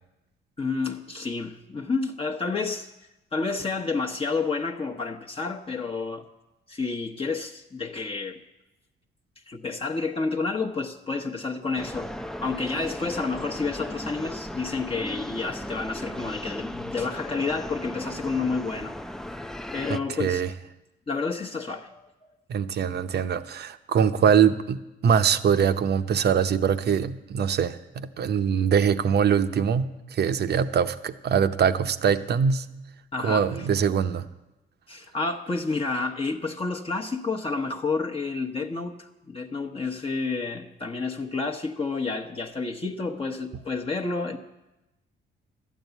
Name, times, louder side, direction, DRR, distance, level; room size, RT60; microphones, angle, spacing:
voice 1, 0.6-2.9 3.3-6.3 6.7-8.4 9.5-12.1 12.4-18.9 19.7-20.4 21.1-22.0 33.1-33.6 34.9-44.4, left 4 dB, 30° left, 1 dB, 1.0 m, -30 dB
sound 1, 11.8-20.0, equal, ahead, 0.5 m, -36 dB
voice 2, 19.9-20.5 22.5-32.7 33.2-34.2, right 7 dB, 55° right, 10 dB, 0.8 m, -23 dB
12.0 x 9.3 x 8.1 m, 0.98 s
cardioid pair, 90°, 20 cm